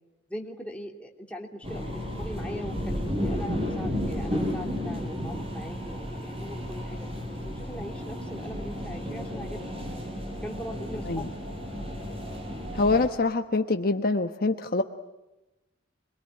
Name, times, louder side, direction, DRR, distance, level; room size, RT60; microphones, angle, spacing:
voice 1, 0.3-9.7 10.4-11.4, equal, 5° left, 0 dB, 3.0 m, -41 dB
sound 1, 1.6-13.1, equal, 30° right, 5.1 m, -33 dB
voice 2, 12.7-14.8, left 3 dB, 50° left, 6 dB, 1.1 m, -25 dB
26.5 x 22.0 x 9.9 m, 1.0 s
head